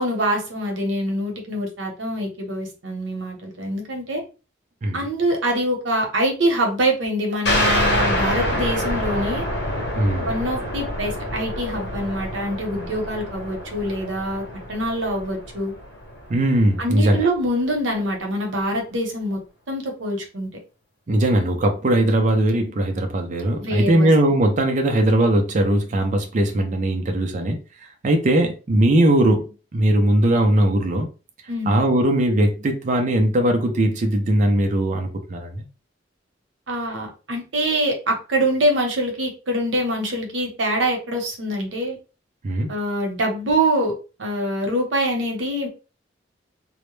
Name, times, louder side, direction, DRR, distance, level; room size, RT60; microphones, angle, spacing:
voice 1, 0.0-4.2 4.9-9.4 10.2-14.4 14.7-15.7 16.8-19.4 19.7-20.5 23.6-24.1 31.5-31.8 36.7-42.0 42.7-43.9 44.2-45.7, right 1 dB, 85° right, 0.8 m, -24 dB
sound 1, 7.5-16.7, equal, 65° left, 1.0 m, -26 dB
voice 2, 10.0-10.3 16.3-17.3 21.1-27.6 28.0-29.5 29.7-31.1 31.7-35.6 42.4-42.7, right 1 dB, 40° right, 0.4 m, -19 dB
2.1 x 2.1 x 3.0 m
head